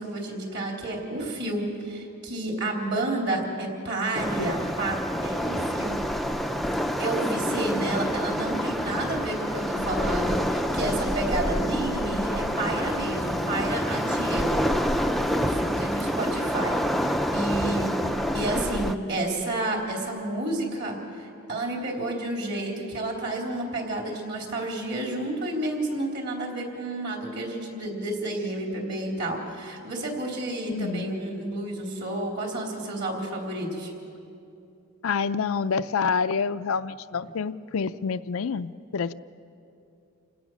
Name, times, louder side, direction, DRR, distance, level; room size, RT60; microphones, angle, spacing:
voice 1, 0.0-6.0 7.0-14.6 15.4-17.9 18.3-33.9, right 2 dB, 50° right, 0 dB, 3.7 m, -30 dB
Waves surf, 4.1-18.9, equal, ahead, 0.4 m, -27 dB
voice 2, 30.7-31.1 35.0-39.1, left 5 dB, 75° left, 11 dB, 0.5 m, -27 dB
28.0 x 17.5 x 6.3 m, 2.7 s
head